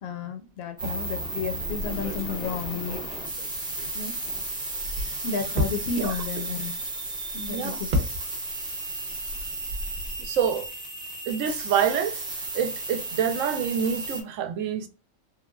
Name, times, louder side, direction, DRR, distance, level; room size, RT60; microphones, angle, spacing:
voice 1, 0.0-3.1 3.9-4.1 5.2-6.7 7.3-8.1, left 5 dB, 60° left, 0.7 m, -32 dB
sound 1, 0.8-14.2, right 2 dB, 5° right, 0.5 m, -34 dB
sound 2, 1.6-4.3 4.6-8.7 9.0-10.3, equal, 50° right, 0.7 m, -33 dB
voice 2, 7.5-7.8 10.2-10.7 11.3-12.2 12.5-14.9, right 8 dB, 80° right, 0.9 m, -27 dB
3.1 x 2.2 x 2.2 m
omnidirectional pair, 1.3 m